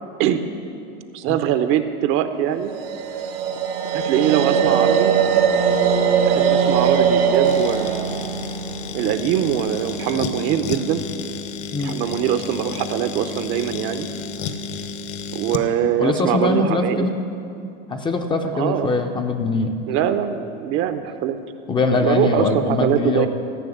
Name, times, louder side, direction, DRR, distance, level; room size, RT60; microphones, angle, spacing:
voice 1, 1.1-2.7 3.9-5.1 6.2-8.1 8.9-11.0 11.8-14.1 15.3-17.1 18.5-18.9 19.9-21.4 22.0-23.3, right 10 dB, 40° right, 9 dB, 0.7 m, -22 dB
sound 1, 2.7-9.8, right 7 dB, 75° right, 1.5 m, -20 dB
sound 2, 7.4-15.7, left 5 dB, 45° left, 0.9 m, -31 dB
voice 2, 16.0-17.1 17.9-19.7 21.7-23.3, left 3 dB, 15° left, 5 dB, 0.5 m, -22 dB
13.5 x 6.2 x 8.5 m, 2.6 s
supercardioid pair, 145°, 31 cm